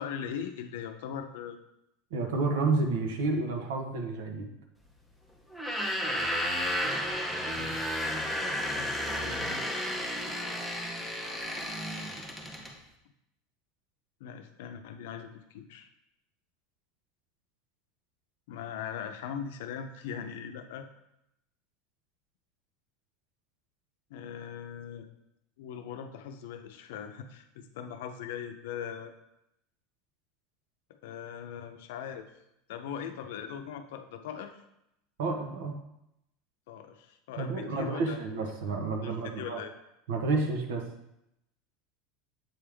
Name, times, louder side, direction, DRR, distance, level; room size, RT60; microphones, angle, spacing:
voice 1, 0.0-1.6 7.5-7.8 8.6-9.6 11.0-11.4 14.2-15.9 18.5-20.9 24.1-25.1 25.6-29.1 30.9-32.2 32.7-34.6 36.7-38.2 39.0-39.7, left 8 dB, 75° left, 7 dB, 0.6 m, -40 dB
voice 2, 2.1-4.5 35.2-35.8 37.4-39.6 40.1-40.8, right 3 dB, 80° right, 3 dB, 1.0 m, -30 dB
sound 1, 5.5-12.7, equal, 5° right, 0.7 m, -32 dB
7.6 x 3.6 x 3.4 m, 0.83 s
supercardioid pair, 145°, 0 cm